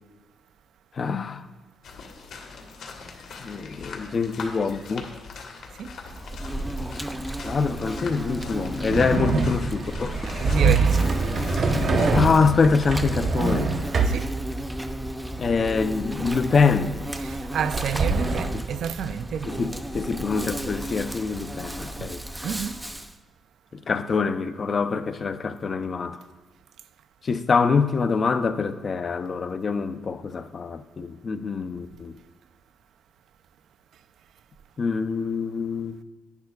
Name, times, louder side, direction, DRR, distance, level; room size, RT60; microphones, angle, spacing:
voice 1, 1.0-1.4 3.4-5.1 7.4-10.2 12.1-13.7 15.4-16.9 18.5-18.6 19.4-22.2 23.7-26.2 27.2-32.2 34.8-36.0, left 4 dB, 40° left, 0.5 m, -25 dB
sound 1, 1.8-12.5, left 3 dB, 75° left, 1.4 m, -38 dB
Insect, 6.1-23.1, right 1 dB, 5° right, 0.5 m, -33 dB
sound 2, 8.9-14.3 17.6-18.4, right 4 dB, 55° right, 0.9 m, -24 dB
voice 2, 10.2-11.2 14.1-14.3 17.2-19.7 22.0-22.1 22.4-22.8, right 8 dB, 75° right, 0.4 m, -30 dB
11.0 x 10.5 x 2.4 m
cardioid pair, 120°, 0 cm